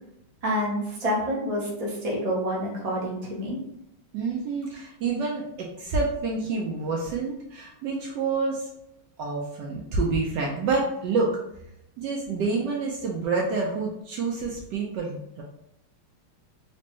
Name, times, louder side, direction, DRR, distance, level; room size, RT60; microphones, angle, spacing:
voice 1, 0.4-3.6, equal, 55° right, -4 dB, 0.4 m, -28 dB
voice 2, 4.1-8.7 9.2-11.3 12.0-15.4, right 4 dB, 75° right, -1 dB, 1.0 m, -28 dB
3.2 x 3.0 x 2.9 m, 0.80 s
omnidirectional pair, 2.3 m